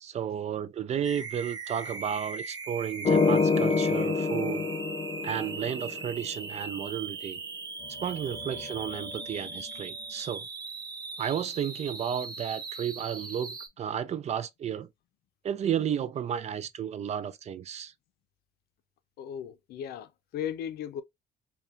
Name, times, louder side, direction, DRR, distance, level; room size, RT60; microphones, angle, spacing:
voice 1, 0.0-4.7 5.2-7.4 8.0-10.5 11.2-14.9 15.4-17.9, right 9 dB, 40° right, 0.4 m, -33 dB
sound 1, 1.0-13.7, right 4 dB, 25° right, 0.8 m, -39 dB
sound 2, 3.0-6.1 7.9-9.6, left 4 dB, 35° left, 0.7 m, -28 dB
voice 2, 19.2-21.0, left 9 dB, 70° left, 0.6 m, -36 dB
5.4 x 2.3 x 2.5 m
cardioid pair, 110°, 17 cm